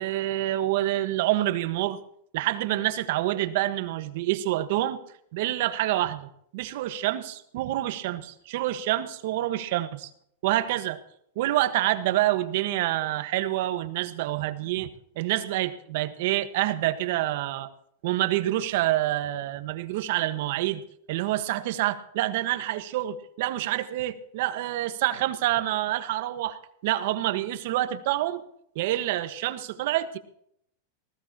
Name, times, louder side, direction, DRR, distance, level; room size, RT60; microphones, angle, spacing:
voice 1, 0.0-2.0 2.3-5.0 5.3-10.1 10.4-11.0 11.3-14.9 15.1-17.7 18.0-20.8 21.1-28.4 28.7-30.2, right 14 dB, 55° right, 9 dB, 1.4 m, -27 dB
19.5 x 16.0 x 3.0 m, 0.69 s
supercardioid pair, 160°, 0 cm